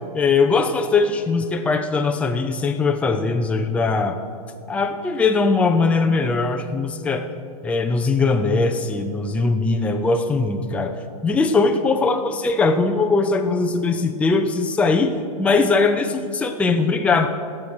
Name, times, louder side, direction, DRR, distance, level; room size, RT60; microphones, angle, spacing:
voice 1, 0.1-4.2 4.7-7.2 7.6-11.0 11.2-15.1 15.4-17.3, left 4 dB, 5° left, 4 dB, 0.5 m, -20 dB
17.5 x 7.5 x 4.8 m, 2.4 s
hypercardioid pair, 135°, 19 cm